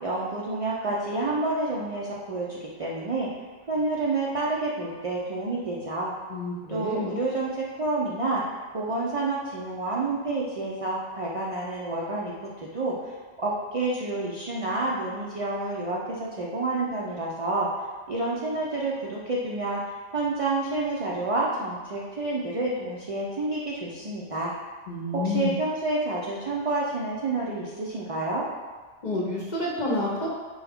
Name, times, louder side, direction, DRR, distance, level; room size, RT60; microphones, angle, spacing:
voice 1, 0.0-3.3 3.7-6.1 6.7-8.4 8.7-13.1 13.4-19.8 20.1-24.5 25.1-28.4, right 2 dB, 55° right, -5 dB, 0.4 m, -29 dB
voice 2, 6.3-7.1 24.9-25.5 29.0-30.3, left 2 dB, 50° left, -3 dB, 0.7 m, -29 dB
4.7 x 2.3 x 3.4 m, 1.4 s
omnidirectional pair, 1.2 m